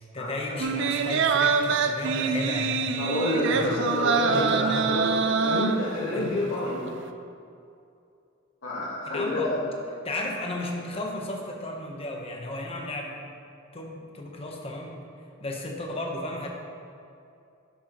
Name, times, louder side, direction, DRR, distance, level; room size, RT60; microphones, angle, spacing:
voice 1, 0.1-2.8 3.5-3.8 4.3-5.0 6.1-6.4 9.1-9.5 10.0-13.2 13.7-15.0 15.4-16.5, left 1 dB, 30° left, 0 dB, 1.0 m, -34 dB
sound 1, 0.6-6.2 6.6-6.7, right 5 dB, 65° right, 0.4 m, -25 dB
voice 2, 3.0-5.0 5.4-6.9 8.6-9.6, left 1 dB, 80° left, -8 dB, 1.5 m, -28 dB
11.5 x 6.2 x 3.1 m, 2.5 s
head